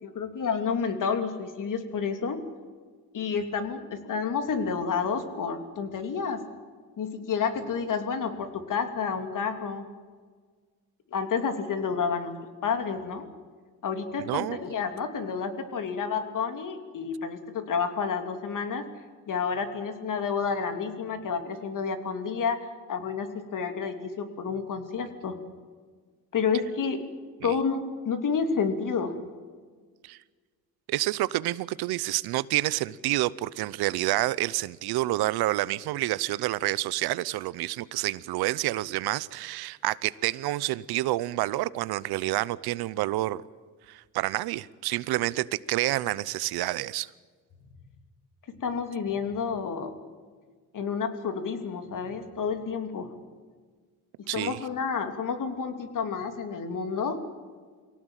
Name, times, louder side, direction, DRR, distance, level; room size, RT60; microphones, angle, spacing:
voice 1, 0.0-2.4 3.1-6.4 7.0-9.8 11.1-12.3 12.6-13.3 13.8-18.8 19.3-25.4 26.3-27.0 27.4-29.2 48.6-50.0 50.7-53.1 54.3-57.2, left 6 dB, 55° left, 7 dB, 3.1 m, -30 dB
voice 2, 14.3-14.6 27.4-27.5 30.0-30.2 30.9-43.4 43.9-47.1 54.3-54.6, right 17 dB, 90° right, 19 dB, 0.8 m, -28 dB
24.0 x 17.5 x 9.1 m, 1.5 s
cardioid pair, 100°, 37 cm